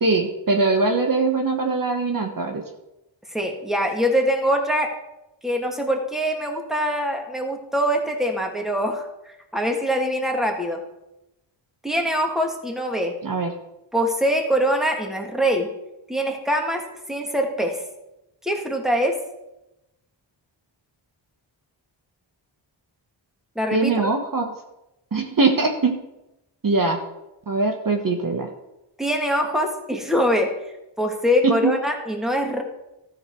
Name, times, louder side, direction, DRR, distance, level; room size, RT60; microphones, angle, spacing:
voice 1, 0.0-2.6 13.2-13.5 23.7-24.5 25.1-25.9 26.6-27.0 27.5-28.5 31.4-31.7, right 3 dB, 45° right, 4 dB, 1.2 m, -21 dB
voice 2, 3.3-4.9 5.4-9.0 9.5-10.8 11.8-13.1 13.9-15.7 16.1-16.8 17.1-17.8 18.4-19.2 23.6-23.9 29.0-30.5 31.0-32.6, equal, ahead, 2 dB, 1.7 m, -23 dB
13.0 x 6.6 x 4.5 m, 0.92 s
wide cardioid pair, 85°, 47 cm